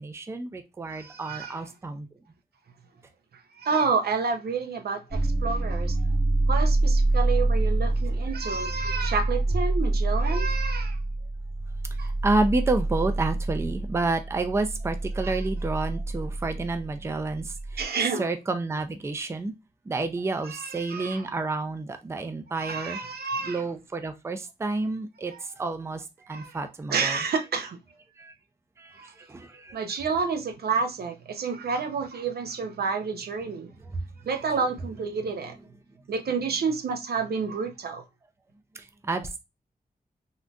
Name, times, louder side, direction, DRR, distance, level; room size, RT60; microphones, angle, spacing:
voice 1, 0.0-2.1 7.8-7.9 8.4-8.9 12.0-17.9 18.2-19.5 19.9-23.0 23.4-27.2 28.2-28.3 28.8-29.8 33.8-34.0 38.7-39.4, right 3 dB, 15° right, 0.3 m, -30 dB
voice 2, 0.9-1.6 3.6-6.0 6.5-11.0 12.0-12.1 15.2-15.3 17.8-18.2 20.5-21.2 22.6-23.6 26.3-26.5 26.9-27.8 29.0-29.1 29.7-33.7 34.3-35.6 36.1-38.0, right 5 dB, 85° right, 0.6 m, -29 dB
sound 1, 5.1-17.8, right 2 dB, 35° right, 0.9 m, -27 dB
3.6 x 2.6 x 2.2 m
wide cardioid pair, 135°, 16 cm